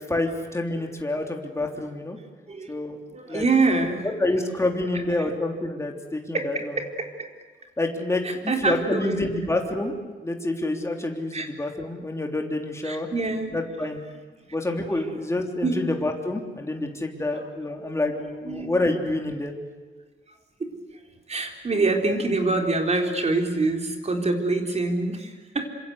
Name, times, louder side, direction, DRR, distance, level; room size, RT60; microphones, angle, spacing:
voice 1, 0.1-2.2 2.7-3.0 3.3-3.5 4.2-6.7 7.8-13.1 13.5-14.0 14.5-19.5, left 2 dB, 15° left, 2 dB, 3.5 m, -28 dB
voice 2, 3.1-4.1 6.3-7.3 8.2-9.2 11.3-11.5 12.8-13.6 14.9-15.1 15.6-15.8 18.4-18.7 20.6-20.7 21.3-25.7, right 3 dB, 35° right, 3 dB, 4.0 m, -25 dB
27.0 x 26.0 x 8.2 m, 1.4 s
wide cardioid pair, 150°, 20 cm